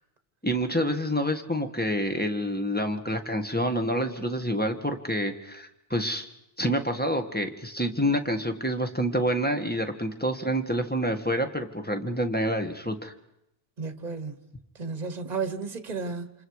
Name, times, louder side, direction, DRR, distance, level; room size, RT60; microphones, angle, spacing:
voice 1, 0.4-6.3 6.6-13.1, equal, 10° left, 1.6 m, -27 dB
voice 2, 13.8-14.5 14.7-16.3, right 4 dB, 45° right, 1.4 m, -33 dB
28.5 x 27.0 x 4.8 m
omnidirectional pair, 1.1 m